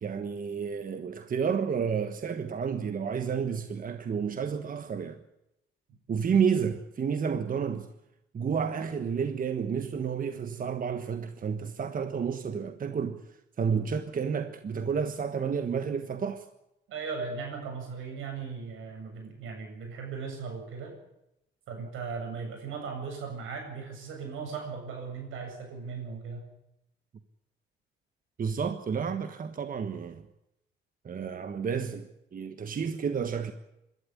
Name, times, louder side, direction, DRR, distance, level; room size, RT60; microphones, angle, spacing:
voice 1, 0.0-5.2 6.1-7.9 8.3-13.2 13.6-16.4 28.4-30.2 31.0-33.5, right 6 dB, 45° right, 1.4 m, -30 dB
voice 2, 16.9-20.9 21.7-26.4, right 5 dB, 85° right, 7.8 m, -38 dB
25.5 x 12.5 x 9.8 m
cardioid pair, 90°, 20 cm